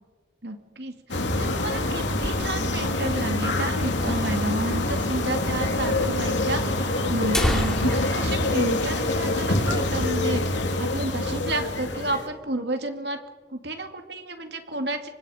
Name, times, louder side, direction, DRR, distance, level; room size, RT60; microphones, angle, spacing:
voice 1, 0.4-10.4 10.8-13.2 13.5-15.1, right 2 dB, 60° right, 5 dB, 2.4 m, -31 dB
sound 1, 1.1-12.3, left 2 dB, 75° left, 2.6 m, -25 dB
sound 2, 5.8-5.9 6.7-6.8 7.1-9.7 10.0-10.2 10.6-10.8 11.2-11.8, equal, 5° left, 2.7 m, -31 dB
28.5 x 25.0 x 5.1 m, 1.3 s
head